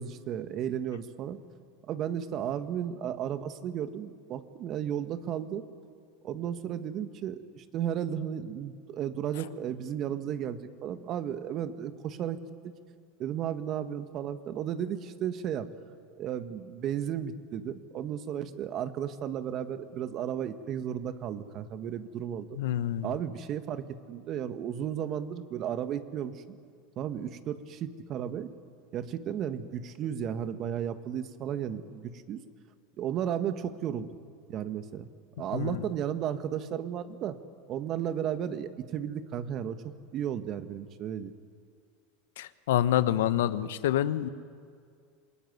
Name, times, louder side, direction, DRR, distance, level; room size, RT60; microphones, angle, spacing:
voice 1, 0.0-1.4 1.9-5.6 6.2-12.4 13.2-15.7 16.2-22.5 23.0-26.6 27.0-28.5 28.9-32.4 33.0-34.1 34.5-35.1 35.4-37.4 37.7-39.8 40.1-41.3, right 9 dB, 45° right, 10 dB, 1.7 m, -34 dB
voice 2, 22.5-23.1 35.5-35.8 42.4-44.3, left 12 dB, 75° left, 14 dB, 1.0 m, -27 dB
27.5 x 20.5 x 9.5 m, 2.1 s
hypercardioid pair, 95°, 0 cm